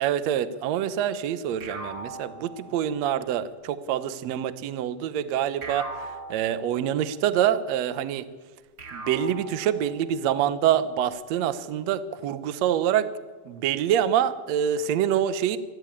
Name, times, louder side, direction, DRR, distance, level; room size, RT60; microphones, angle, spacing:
voice 1, 0.0-8.3 8.9-13.1 13.4-15.6, right 10 dB, 70° right, 13 dB, 1.7 m, -26 dB
sound 1, 1.6-3.2 5.6-7.2 8.8-10.3, right 2 dB, 25° right, 4.2 m, -40 dB
25.5 x 12.5 x 8.8 m, 1.3 s
omnidirectional pair, 4.2 m